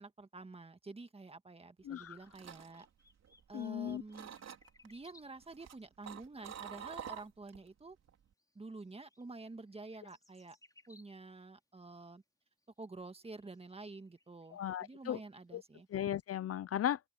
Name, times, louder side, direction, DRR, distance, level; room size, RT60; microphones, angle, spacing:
voice 1, 0.0-2.9 3.5-4.3 4.8-8.0 8.5-10.6 10.9-12.2 12.8-15.9, right 3 dB, 20° right, 1.7 m, -49 dB
voice 2, 1.9-2.2 3.5-4.0 14.5-15.2 15.5-15.6 15.9-17.0, left 10 dB, 50° left, 0.7 m, -36 dB
sound 1, 1.9-6.3 6.7-6.8 7.4-7.5 8.4-11.5 11.8-11.9 12.6-16.2, left 2 dB, 10° left, 4.4 m, -67 dB
sound 2, 1.9-3.8 4.1-4.9 5.4-7.7 8.0-8.3, right 9 dB, 60° right, 4.4 m, -48 dB
open air
cardioid pair, 90°, 30 cm